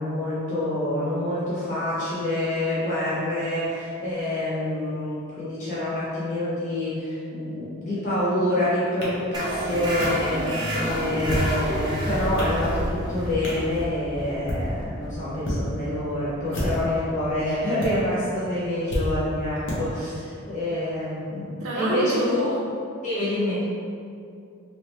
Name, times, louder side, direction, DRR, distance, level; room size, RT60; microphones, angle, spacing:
voice 1, 0.0-22.5 23.0-23.6, left 1 dB, 35° left, -10 dB, 0.9 m, -27 dB
sound 1, 9.0-9.1 10.0-10.1 11.1-11.6 12.1-12.6 13.4-13.7 14.3-14.6 15.4-15.6 16.4-16.9 17.8-17.9 18.9-19.0 19.7-19.8, equal, 60° left, 0.8 m, -28 dB
sound 2, 9.3-16.5, right 1 dB, 20° right, 0.5 m, -30 dB
voice 2, 10.4-11.0 21.6-22.6, right 2 dB, 80° right, -5 dB, 0.5 m, -28 dB
3.2 x 2.8 x 3.0 m, 2.4 s
head